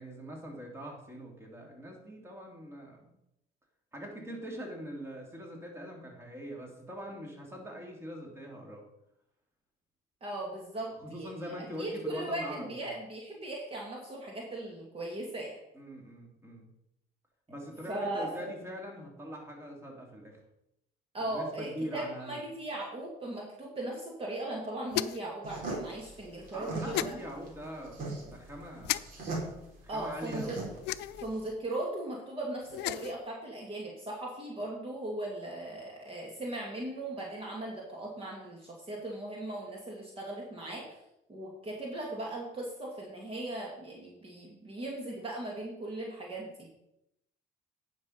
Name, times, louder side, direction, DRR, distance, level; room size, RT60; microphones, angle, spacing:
voice 1, 0.0-3.1 3.9-8.9 11.0-13.0 15.7-16.7 17.5-20.4 21.2-22.4 26.5-29.2 29.8-30.6, equal, 15° right, 0 dB, 2.8 m, -43 dB
voice 2, 10.2-15.6 17.9-18.5 21.1-27.1 29.9-30.6 31.2-41.0 41.3-46.7, right 1 dB, 35° right, -2 dB, 2.3 m, -38 dB
sound 1, 24.9-25.3 26.9-27.1 28.8-29.0 30.8-31.3 32.6-33.2, left 15 dB, 85° left, 0.4 m, -33 dB
sound 2, 25.4-31.5, right 2 dB, 55° right, 3.8 m, -39 dB
9.6 x 6.0 x 5.8 m, 0.83 s
cardioid pair, 110°, 17 cm